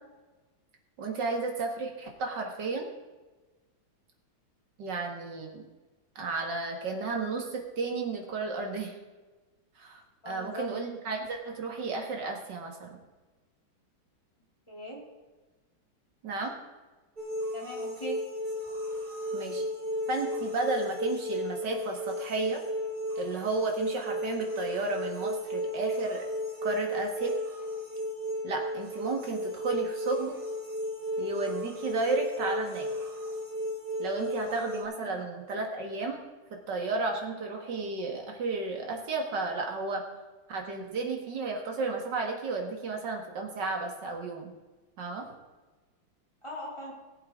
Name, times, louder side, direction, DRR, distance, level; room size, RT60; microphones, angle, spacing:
voice 1, 1.0-2.9 4.8-5.6 6.2-8.9 9.8-13.0 16.2-16.5 19.3-19.6 20.1-22.6 23.2-26.3 26.6-27.3 28.4-30.3 31.2-32.9 34.0-36.2 36.5-40.0 40.5-44.5 45.0-45.3, right 3 dB, 60° right, 2 dB, 2.4 m, -33 dB
voice 2, 10.2-10.7 14.7-15.0 17.5-18.2 35.0-35.2 46.4-46.9, left 1 dB, 15° left, -4 dB, 3.2 m, -40 dB
sound 1, 17.2-34.8, left 1 dB, 20° right, 2.5 m, -34 dB
19.0 x 7.8 x 3.8 m, 1.2 s
omnidirectional pair, 2.2 m